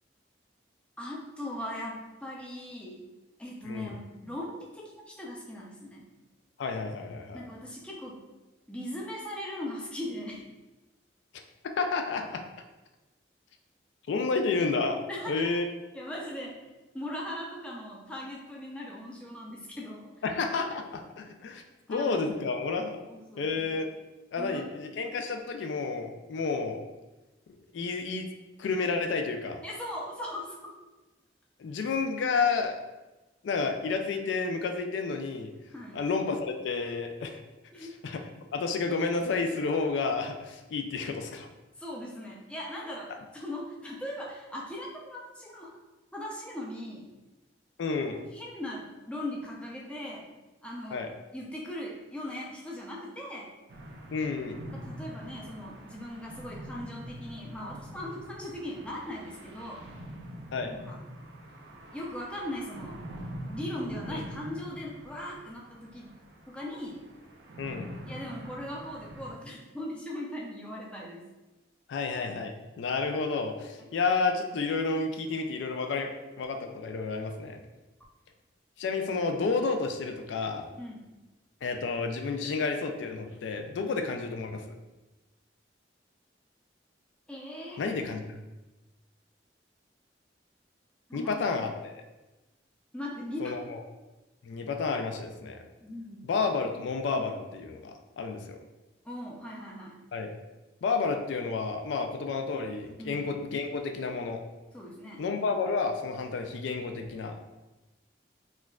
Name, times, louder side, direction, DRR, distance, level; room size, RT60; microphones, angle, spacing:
voice 1, 1.0-3.1 3.4-6.1 7.3-8.2 8.7-10.4 15.1-15.5 15.9-16.6 16.9-20.1 21.9-22.3 23.1-23.6 24.4-24.7 29.6-30.7 35.7-36.0 37.7-37.9 41.8-45.8 46.1-47.1 48.1-50.3 50.6-51.1 51.3-53.5 54.7-59.9 60.7-61.0 61.9-63.1 63.4-66.2 66.5-67.0 68.1-71.3 73.8-73.9 80.8-81.1 83.9-84.0 87.3-87.8 91.1-91.3 92.9-93.6 95.8-96.2 99.0-99.9 103.0-103.3 104.7-105.3, left 1 dB, 5° left, -3 dB, 0.4 m, -39 dB
voice 2, 6.6-7.4 11.8-12.4 14.1-15.0 15.3-15.7 20.2-21.6 21.9-23.0 23.4-23.9 24.3-26.8 27.7-28.3 28.6-29.6 31.6-32.8 33.4-35.5 35.9-37.4 37.8-38.2 38.5-41.5 47.8-48.3 50.9-51.1 54.1-54.6 60.5-60.7 64.1-64.2 67.6-67.9 71.9-76.1 76.4-77.6 78.8-80.7 81.6-84.8 87.8-88.4 91.1-92.0 93.4-93.8 94.4-95.6 96.2-98.6 100.1-100.3 100.8-104.4 105.2-107.4, left 4 dB, 80° left, 5 dB, 0.3 m, -30 dB
sound 1, 53.7-69.3, right 1 dB, 65° right, 0.5 m, -44 dB
4.3 x 2.3 x 2.2 m, 1.1 s
head